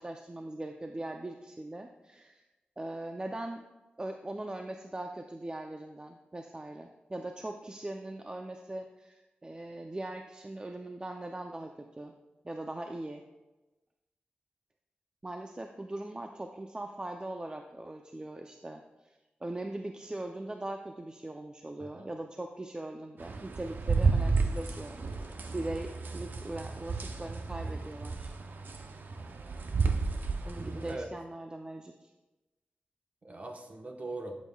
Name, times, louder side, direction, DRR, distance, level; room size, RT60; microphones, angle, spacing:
voice 1, 0.0-2.4 2.8-3.6 4.0-12.1 12.4-13.2 15.2-25.3 25.5-28.3 30.5-32.1, right 1 dB, 25° right, 4 dB, 0.5 m, -40 dB
voice 2, 21.8-22.1 30.5-31.1 33.2-34.4, right 2 dB, 45° right, 3 dB, 1.1 m, -41 dB
sound 1, 23.2-30.9, right 4 dB, 65° right, 0.7 m, -32 dB
11.5 x 7.4 x 2.3 m, 1.1 s
wide cardioid pair, 75°, 3 cm